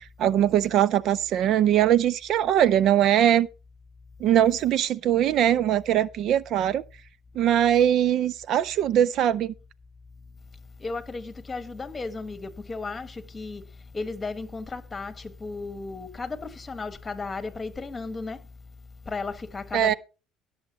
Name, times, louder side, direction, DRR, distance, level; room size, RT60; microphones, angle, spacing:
voice 1, 0.0-3.5 4.2-6.8 7.4-9.5 19.7-19.9, right 11 dB, 55° right, 0.4 m, -21 dB
voice 2, 10.8-13.6 13.9-18.4 19.1-20.0, left 3 dB, 20° left, 1.6 m, -34 dB
20.0 x 7.1 x 3.0 m
supercardioid pair, 105°, 0 cm